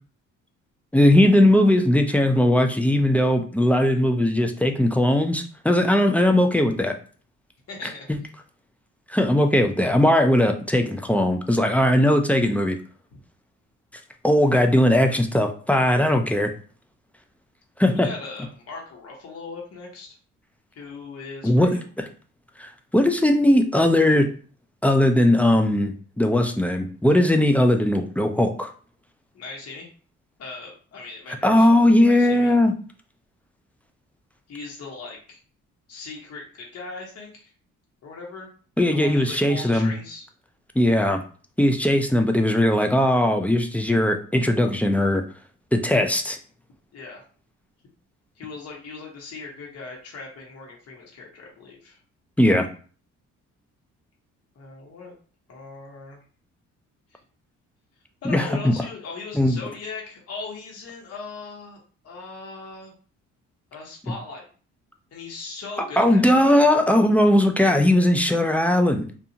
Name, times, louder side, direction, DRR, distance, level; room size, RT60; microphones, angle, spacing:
voice 1, 0.9-6.9 9.1-12.8 14.2-16.5 17.8-18.1 21.4-21.8 22.6-24.3 24.8-28.7 31.4-32.7 38.8-39.9 40.8-41.2 41.6-45.2 45.7-46.4 52.4-52.7 58.2-58.7 59.3-59.6 66.0-69.1, left 1 dB, 5° left, 4 dB, 0.3 m, -19 dB
voice 2, 7.7-8.1 13.1-13.2 18.0-20.2 20.7-21.8 29.3-29.9 30.4-31.7 32.0-32.5 34.5-35.4 35.9-37.5 38.0-38.5 38.9-40.2 46.9-47.2 48.4-52.0 54.5-55.1 55.5-56.2 57.1-57.2 58.2-61.8 62.0-62.9 63.7-64.5 65.1-66.6, left 4 dB, 55° left, -2 dB, 1.0 m, -39 dB
2.4 x 2.4 x 2.8 m, 0.41 s
cardioid pair, 90°, 30 cm